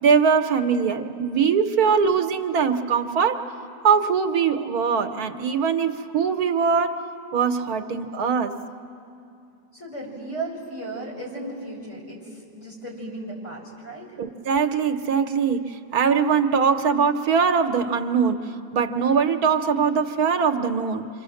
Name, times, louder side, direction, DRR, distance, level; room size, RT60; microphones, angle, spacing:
voice 1, 0.0-3.4 3.8-7.0 7.3-8.5 14.2-18.4 18.7-21.1, right 6 dB, 75° right, 7 dB, 1.4 m, -22 dB
voice 2, 9.7-14.2, right 2 dB, 45° left, -4 dB, 6.4 m, -35 dB
28.0 x 25.5 x 7.7 m, 2.6 s
omnidirectional pair, 1.6 m